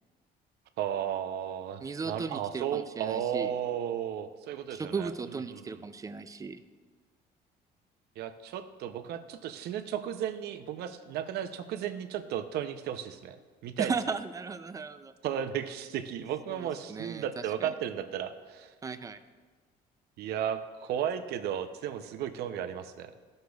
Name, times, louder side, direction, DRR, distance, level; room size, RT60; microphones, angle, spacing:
voice 1, 0.8-5.1 5.5-5.8 8.2-13.4 13.6-13.9 15.2-18.7 20.2-23.1, right 9 dB, 75° right, 9 dB, 0.6 m, -34 dB
voice 2, 1.8-3.5 4.7-6.6 13.8-15.1 16.5-17.7 18.8-19.2, right 5 dB, 20° right, 11 dB, 0.4 m, -36 dB
13.0 x 6.5 x 2.3 m, 1.5 s
cardioid pair, 110°, 17 cm